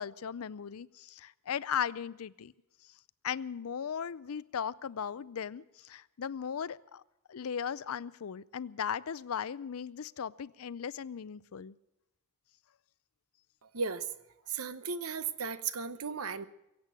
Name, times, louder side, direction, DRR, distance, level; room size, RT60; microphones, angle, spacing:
voice 1, 0.0-2.5 3.2-7.0 7.3-11.8, left 7 dB, 70° left, 19 dB, 0.5 m, -37 dB
voice 2, 13.7-14.1 14.5-16.4, right 5 dB, 75° right, 13 dB, 0.9 m, -35 dB
23.0 x 8.3 x 7.5 m, 0.92 s
head